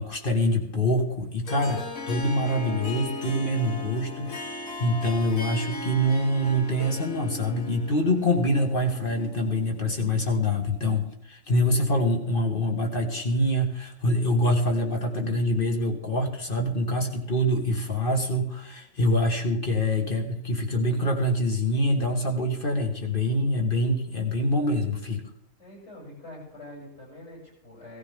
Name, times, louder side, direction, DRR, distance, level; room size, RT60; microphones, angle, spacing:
voice 1, 0.0-25.2, left 1 dB, 40° left, 2 dB, 2.2 m, -25 dB
Harp, 1.4-9.9, left 2 dB, 80° left, 2.0 m, -37 dB
voice 2, 25.6-28.0, left 1 dB, 55° left, -3 dB, 8.2 m, -45 dB
18.0 x 14.0 x 3.8 m, 0.73 s
omnidirectional pair, 1.4 m